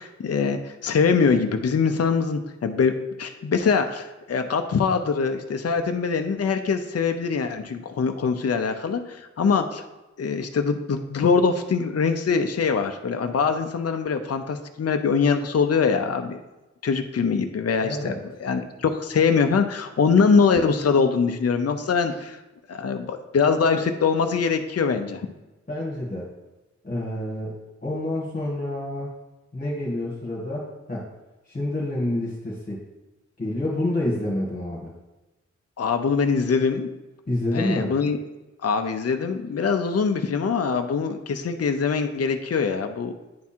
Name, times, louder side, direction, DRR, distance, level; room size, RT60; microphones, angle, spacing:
voice 1, 0.0-9.8 10.2-16.4 16.8-18.1 18.4-22.4 22.7-25.2 35.8-36.9 37.5-38.2 38.6-43.1, left 5 dB, 55° left, 6 dB, 0.6 m, -23 dB
voice 2, 17.8-18.2 25.7-26.3 26.8-27.6 27.8-29.1 29.5-31.0 31.5-32.8 33.4-34.9 37.3-37.9, left 1 dB, 30° left, -5 dB, 1.8 m, -28 dB
9.5 x 3.6 x 4.4 m, 1.1 s
wide cardioid pair, 65°, 29 cm